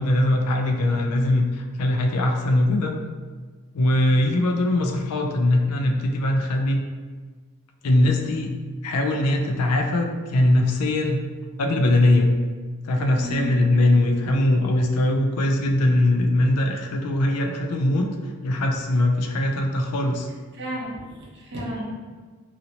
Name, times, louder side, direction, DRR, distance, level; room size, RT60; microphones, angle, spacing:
voice 1, 0.0-2.9 3.7-6.8 7.8-8.5 8.8-11.2 11.6-12.4 12.8-18.1 18.4-20.3, left 1 dB, 90° left, 3 dB, 0.4 m, -21 dB
voice 2, 13.2-13.5 20.5-21.8, equal, 50° right, -4 dB, 0.9 m, -32 dB
2.8 x 2.7 x 2.7 m, 1.5 s
head